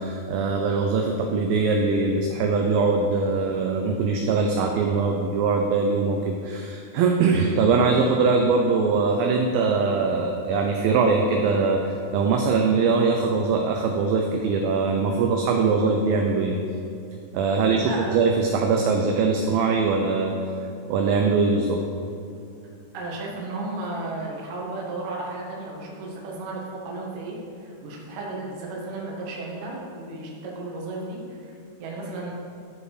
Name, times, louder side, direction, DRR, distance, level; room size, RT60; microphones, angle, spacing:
voice 1, 0.0-16.6 17.3-20.4 20.9-21.8, right 4 dB, 85° right, 2 dB, 2.1 m, -22 dB
voice 2, 17.7-18.3 22.9-32.3, right 2 dB, 70° right, -3 dB, 1.4 m, -34 dB
11.5 x 5.2 x 4.9 m, 2.6 s
omnidirectional pair, 4.9 m